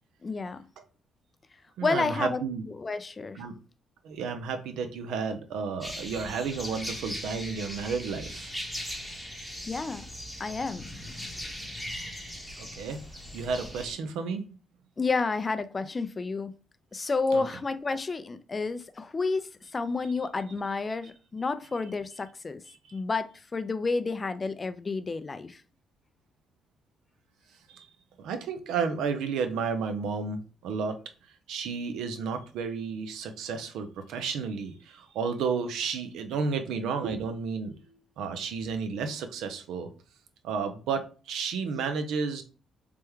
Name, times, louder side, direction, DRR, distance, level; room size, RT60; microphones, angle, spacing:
voice 1, 0.2-0.6 1.8-2.4 2.8-3.4 9.7-10.1 10.4-10.8 15.0-16.5 16.9-22.6 22.9-25.6, left 4 dB, 30° left, 0.3 m, -30 dB
voice 2, 1.8-2.6 3.4-3.5 4.0-8.5 12.1-13.0 13.3-14.4 17.3-17.4 22.8-22.9 27.7-27.9 28.2-31.0 31.5-39.9 40.4-42.4, right 5 dB, 85° right, 0.5 m, -32 dB
sound 1, 5.8-14.0, equal, ahead, 0.8 m, -39 dB
3.4 x 2.2 x 3.0 m
cardioid pair, 90°, 0 cm